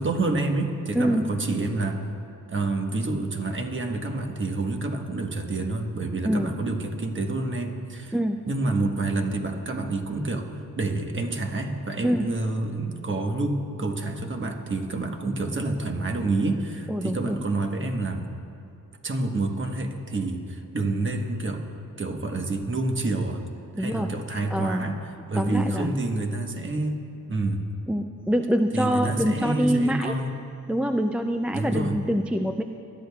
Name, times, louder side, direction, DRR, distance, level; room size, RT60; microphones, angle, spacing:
voice 1, 0.0-2.0 2.5-8.2 8.5-18.2 19.0-21.6 22.0-23.4 23.8-27.0 27.3-27.7 28.7-30.3 31.5-32.0, right 2 dB, 35° right, 3 dB, 1.2 m, -28 dB
voice 2, 1.0-1.3 6.2-6.5 8.1-8.4 12.0-12.3 16.9-17.4 23.8-24.1 24.5-24.8 25.4-25.9 27.9-30.1 30.7-32.6, equal, 5° right, 6 dB, 0.3 m, -25 dB
20.5 x 12.0 x 2.3 m, 2.5 s
cardioid pair, 85°, 36 cm